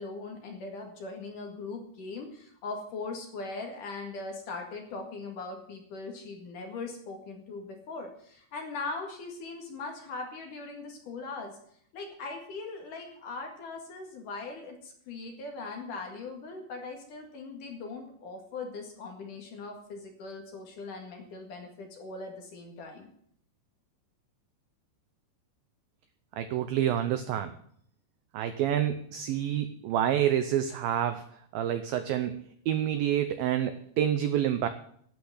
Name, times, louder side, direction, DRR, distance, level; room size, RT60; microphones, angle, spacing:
voice 1, 0.0-11.6 11.9-23.1, left 3 dB, 55° left, 3 dB, 3.1 m, -40 dB
voice 2, 26.4-27.5 28.3-31.2 31.5-34.7, right 10 dB, 80° right, 9 dB, 2.1 m, -28 dB
12.0 x 8.6 x 8.1 m, 0.64 s
omnidirectional pair, 5.1 m